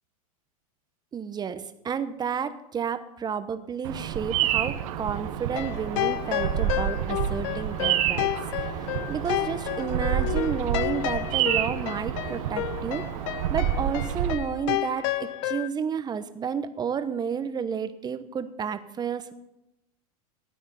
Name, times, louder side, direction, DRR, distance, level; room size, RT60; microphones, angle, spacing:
voice 1, 1.1-8.3 8.7-13.0 13.5-19.3, right 7 dB, 20° right, 11 dB, 1.0 m, -31 dB
Bird vocalization bird call bird song, 3.8-14.4, right 10 dB, 65° right, 1.1 m, -29 dB
sound 1, 5.5-15.7, left 16 dB, 60° left, 0.6 m, -31 dB
13.5 x 9.2 x 5.7 m, 0.88 s
hypercardioid pair, 110°, 19 cm